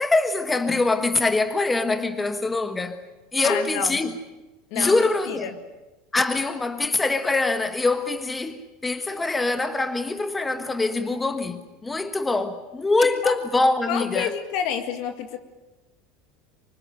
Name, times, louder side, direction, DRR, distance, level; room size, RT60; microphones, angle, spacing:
voice 1, 0.0-3.0 3.3-4.2 4.7-5.5 6.1-14.3, left 3 dB, 15° left, 1.5 m, -24 dB
voice 2, 3.4-4.0 4.7-5.5 13.0-13.3 13.9-15.4, left 8 dB, 65° left, 2.0 m, -29 dB
25.0 x 19.5 x 9.2 m
supercardioid pair, 120°, 0 cm